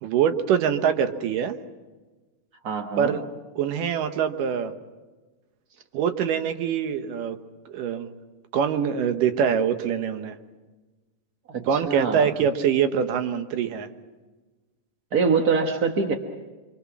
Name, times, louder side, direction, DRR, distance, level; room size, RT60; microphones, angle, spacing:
voice 1, 0.0-1.6 3.0-3.2 3.6-4.7 5.9-7.4 7.7-8.1 8.5-10.4 11.7-13.9, right 8 dB, 90° right, 8 dB, 2.8 m, -24 dB
voice 2, 2.6-3.2 11.5-12.3 15.1-16.1, right 5 dB, 55° right, 3 dB, 1.1 m, -24 dB
27.5 x 24.0 x 6.1 m, 1.3 s
omnidirectional pair, 3.7 m